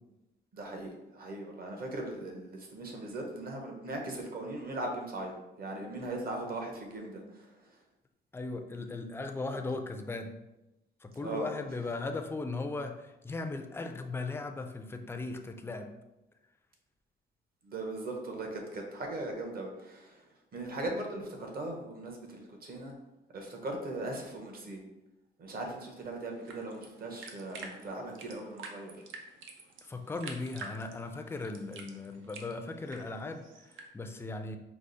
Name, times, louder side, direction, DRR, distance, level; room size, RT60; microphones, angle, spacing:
voice 1, 0.5-7.7 11.2-11.5 17.6-20.3 20.5-22.9 23.3-24.8 25.4-29.0, right 2 dB, 50° right, 2 dB, 1.0 m, -39 dB
voice 2, 8.3-10.4 11.0-15.9 29.8-33.4 33.9-34.6, left 3 dB, 10° left, 5 dB, 0.4 m, -37 dB
sound 1, 26.1-33.8, right 4 dB, 75° right, 0.6 m, -49 dB
4.8 x 2.0 x 3.9 m, 0.96 s
cardioid pair, 90°, 20 cm